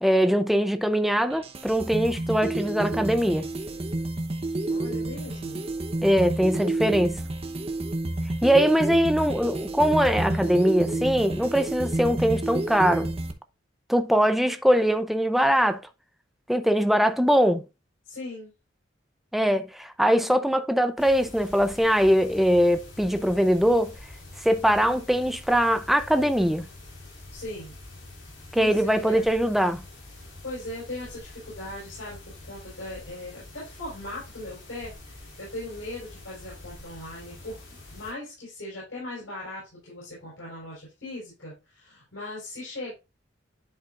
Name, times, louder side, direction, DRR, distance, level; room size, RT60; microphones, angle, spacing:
voice 1, 0.0-3.5 6.0-7.2 8.4-13.1 13.9-15.8 16.5-17.6 19.3-23.9 24.4-26.7 28.5-29.8, equal, ahead, 0.6 m, -22 dB
sound 1, 1.3-13.3, right 2 dB, 30° right, 0.8 m, -30 dB
voice 2, 4.7-5.6 18.0-18.5 27.3-27.8 28.6-29.3 30.2-37.6 37.9-42.9, left 1 dB, 85° left, 4.9 m, -39 dB
sound 2, 21.0-38.1, left 2 dB, 70° left, 4.9 m, -45 dB
11.0 x 4.9 x 2.4 m
head